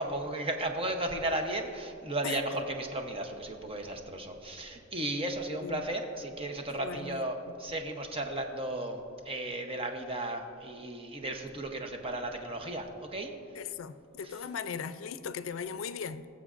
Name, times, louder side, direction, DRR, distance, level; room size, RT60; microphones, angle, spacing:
voice 1, 0.0-9.0 9.2-13.3 14.2-14.3, right 1 dB, 30° right, 4 dB, 0.8 m, -35 dB
voice 2, 6.7-7.3 13.6-16.3, left 6 dB, 85° left, 13 dB, 0.4 m, -38 dB
19.5 x 7.1 x 2.5 m, 2.7 s
head